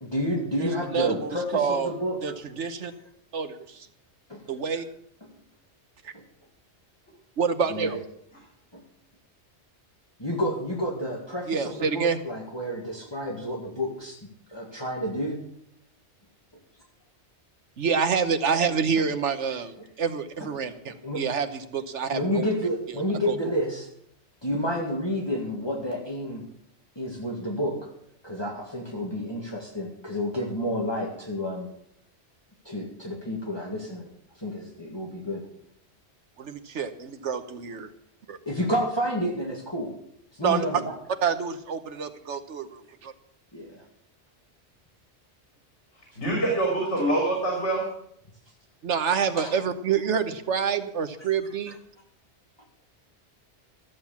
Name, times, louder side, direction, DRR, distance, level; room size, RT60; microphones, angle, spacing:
voice 1, 0.0-2.2 4.3-4.4 5.3-5.4 6.1-6.2 7.7-8.0 8.7-8.8 10.2-14.2 14.5-15.4 20.9-21.2 22.1-23.9 24.4-26.4 27.0-27.9 28.2-31.7 32.6-34.1 34.4-35.4 38.5-39.9 40.3-40.9 43.5-43.8 47.0-47.1 49.4-49.5, equal, 20° left, -1 dB, 2.0 m, -30 dB
voice 2, 0.6-1.9 2.2-2.9 3.3-3.9 4.5-4.8 6.0-6.1 7.4-8.0 11.5-12.2 17.8-22.4 23.3-23.5 36.4-37.9 38.3-38.4 40.4-40.8 41.2-43.1 48.8-51.8, right 6 dB, 85° right, 9 dB, 1.3 m, -27 dB
voice 3, 46.2-47.9, right 1 dB, 75° left, -2 dB, 3.6 m, -25 dB
13.5 x 7.8 x 7.2 m, 0.70 s
omnidirectional pair, 1.2 m